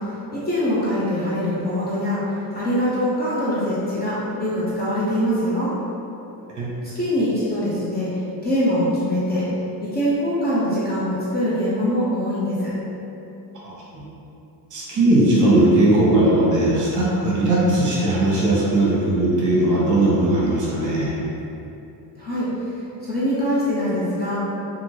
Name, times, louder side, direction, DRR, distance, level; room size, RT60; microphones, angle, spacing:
voice 1, 0.3-5.7 6.9-8.1 8.4-9.5 9.9-12.7 22.2-22.5 23.0-24.4, equal, 25° left, -9 dB, 0.4 m, -23 dB
voice 2, 14.7-21.1, right 1 dB, 45° right, -6 dB, 0.8 m, -18 dB
2.5 x 2.5 x 3.0 m, 2.9 s
cardioid pair, 160°, 41 cm